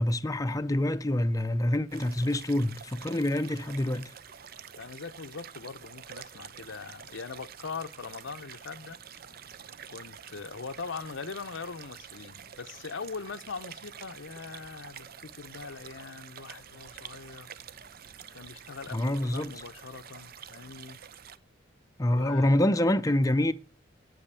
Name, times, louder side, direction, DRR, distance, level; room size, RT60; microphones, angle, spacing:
voice 1, 0.0-4.1 18.9-19.5 22.0-23.5, left 1 dB, 20° left, 0.6 m, -26 dB
sound 1, 1.9-21.4, right 8 dB, 50° right, 0.7 m, -48 dB
voice 2, 4.8-9.0 9.9-17.5 18.3-21.0 22.1-22.6, left 5 dB, 90° left, 0.7 m, -41 dB
9.1 x 8.8 x 8.1 m
head